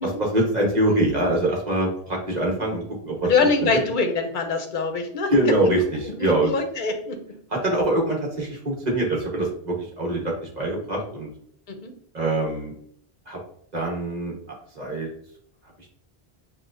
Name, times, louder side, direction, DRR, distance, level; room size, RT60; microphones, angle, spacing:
voice 1, 0.0-3.3 3.6-3.7 5.3-6.5 7.5-11.3 12.1-12.7 13.3-13.4 13.7-15.1, right 1 dB, 40° right, -1 dB, 1.4 m, -24 dB
voice 2, 3.2-5.3 6.2-7.2 11.7-11.9, left 4 dB, 55° left, 5 dB, 0.8 m, -24 dB
7.1 x 2.5 x 2.6 m, 0.65 s
omnidirectional pair, 1.1 m